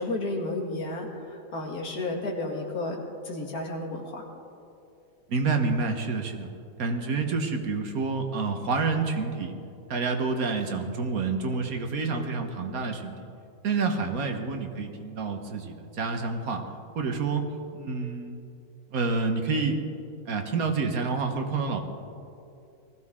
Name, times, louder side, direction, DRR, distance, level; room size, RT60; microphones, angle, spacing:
voice 1, 0.0-4.2, left 2 dB, 80° left, 0 dB, 2.3 m, -32 dB
voice 2, 5.3-6.5 6.8-9.5 9.9-13.2 13.6-16.6 16.9-17.5 17.7-18.4 18.9-19.8 20.3-21.8, right 4 dB, 75° right, 4 dB, 1.6 m, -28 dB
19.5 x 15.0 x 3.7 m, 2.6 s
omnidirectional pair, 1.6 m